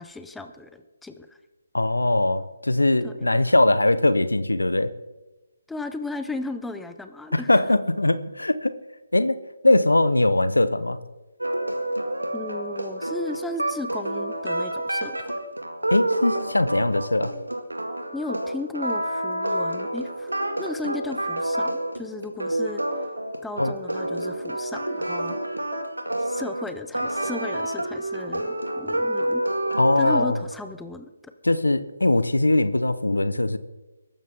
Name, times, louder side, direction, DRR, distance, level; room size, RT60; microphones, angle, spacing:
voice 1, 0.0-1.4 3.0-3.3 5.7-7.6 12.3-15.3 18.1-22.8 23.4-25.4 26.2-29.4 30.0-31.3, left 3 dB, 5° left, 8 dB, 0.8 m, -35 dB
voice 2, 1.7-4.9 7.3-8.7 9.1-11.0 15.9-17.3 23.6-23.7 29.8-30.4 31.4-33.6, left 2 dB, 85° left, 14 dB, 1.0 m, -21 dB
sound 1, 11.4-30.5, right 1 dB, 90° right, 2.1 m, -28 dB
22.5 x 12.0 x 3.7 m, 1.1 s
figure-of-eight pair, 145°, 0 cm